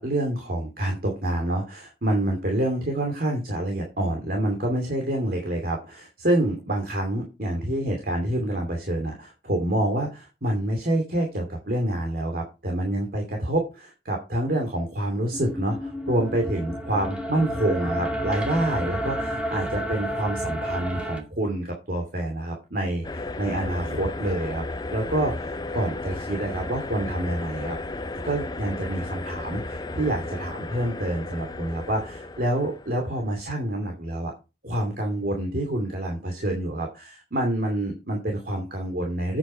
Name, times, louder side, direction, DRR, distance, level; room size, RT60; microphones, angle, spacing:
voice 1, 0.0-24.6 24.9-27.8 28.2-34.3 34.6-39.4, right 1 dB, 55° right, 2 dB, 2.6 m, -27 dB
sound 1, 15.3-21.2, equal, 5° right, 2.2 m, -30 dB
sound 2, 23.0-33.3, left 2 dB, 25° left, 0.6 m, -34 dB
8.7 x 8.1 x 4.5 m, 0.28 s
head